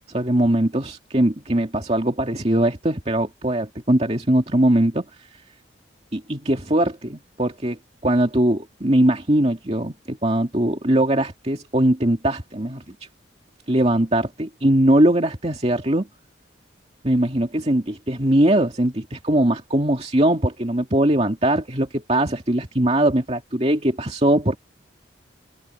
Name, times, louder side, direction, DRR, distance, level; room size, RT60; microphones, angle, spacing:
voice 1, 0.1-5.0 6.1-12.9 13.7-16.1 17.0-24.6, right 1 dB, 35° right, 2.4 m, -21 dB
open air
head